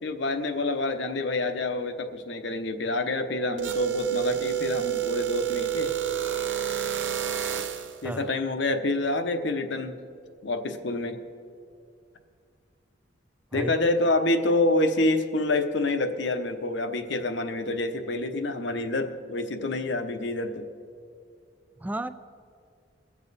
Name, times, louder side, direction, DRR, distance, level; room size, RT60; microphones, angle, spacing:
voice 1, 0.0-5.9 8.0-9.9 10.4-11.2 13.5-20.7, left 2 dB, 65° left, 7 dB, 0.9 m, -27 dB
sound 1, 3.6-8.0, right 11 dB, 75° right, 0.7 m, -29 dB
voice 2, 8.0-8.3 13.5-13.8 21.8-22.1, right 1 dB, 10° right, 12 dB, 0.4 m, -32 dB
21.5 x 7.2 x 4.1 m, 2.3 s
head